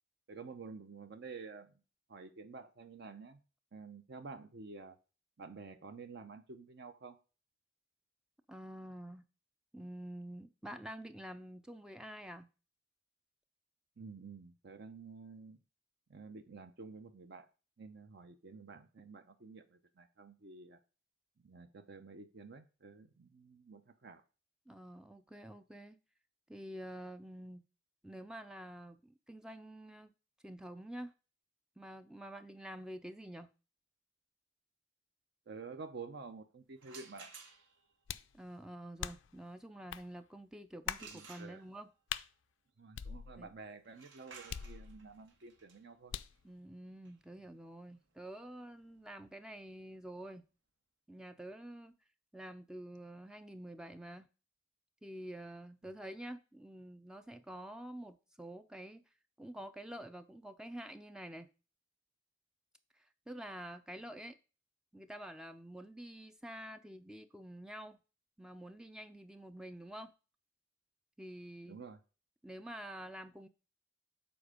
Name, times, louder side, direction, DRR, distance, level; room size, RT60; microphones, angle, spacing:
voice 1, 0.3-1.7 2.1-3.4 3.7-5.0 5.4-7.2 14.0-15.6 16.1-17.5 17.8-20.8 21.4-24.2 35.5-37.3 41.0-41.6 42.8-46.1 71.7-72.0, right 4 dB, 60° right, 0.6 m, -50 dB
voice 2, 8.5-9.3 9.7-12.5 24.7-26.0 26.5-27.6 28.0-30.1 30.4-31.1 31.8-33.5 38.3-41.9 43.4-43.5 46.4-50.4 51.1-51.9 52.3-54.3 55.0-59.0 59.4-61.5 62.9-64.4 64.9-68.0 68.4-70.1 71.2-71.8 72.4-73.5, right 1 dB, 5° right, 0.3 m, -48 dB
sound 1, 36.8-37.9 41.0-42.0 43.8-49.5, right 5 dB, 75° right, 1.6 m, -56 dB
sound 2, 38.1-38.4 39.0-39.4 39.9-40.1 40.9-41.1 42.1-42.3 42.9-43.6 44.5-45.2 46.1-46.4, left 9 dB, 70° left, 0.4 m, -42 dB
7.0 x 4.4 x 4.9 m
head